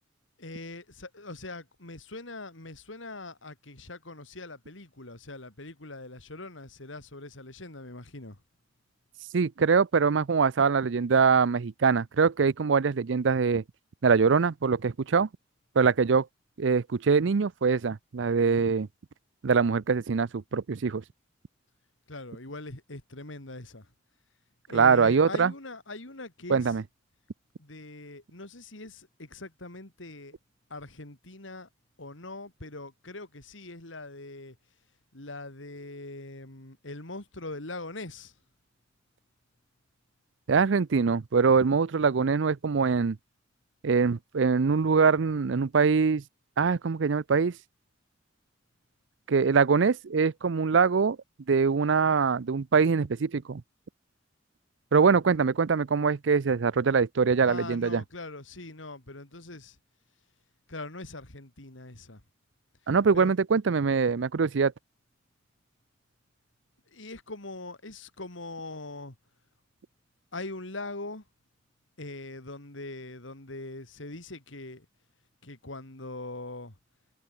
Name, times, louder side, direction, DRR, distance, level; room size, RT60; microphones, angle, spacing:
voice 1, 0.4-8.4 22.1-23.9 24.7-26.8 27.6-30.4 30.7-31.7 32.0-34.6 35.1-38.3 57.4-59.8 60.7-62.2 63.1-63.4 66.9-69.1 70.3-71.2 72.0-74.8 75.4-76.7, left 2 dB, 80° left, 3.4 m, -42 dB
voice 2, 9.3-13.6 14.0-15.3 15.8-16.3 16.6-18.9 19.4-21.0 24.7-25.5 26.5-26.8 40.5-43.2 43.8-46.2 46.6-47.6 49.3-51.2 51.5-53.6 54.9-58.0 62.9-64.7, right 5 dB, 70° right, 0.5 m, -23 dB
head